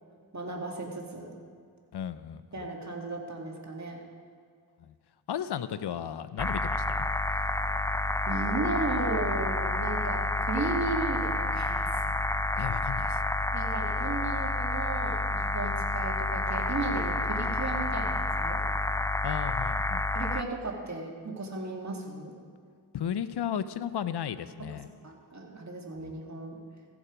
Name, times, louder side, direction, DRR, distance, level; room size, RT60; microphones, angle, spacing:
voice 1, 0.3-1.4 2.5-4.0 8.3-12.2 13.5-18.6 20.1-22.3 24.7-26.6, right 2 dB, 40° right, 0 dB, 2.1 m, -35 dB
voice 2, 1.9-2.7 4.9-5.0 5.3-7.1 12.6-13.2 19.2-20.1 22.9-24.9 26.0-26.2, left 9 dB, 75° left, 14 dB, 0.6 m, -34 dB
sound 1, 6.4-20.4, left 2 dB, 5° left, 0.3 m, -29 dB
15.5 x 7.2 x 5.0 m, 2.1 s
cardioid pair, 45°, 41 cm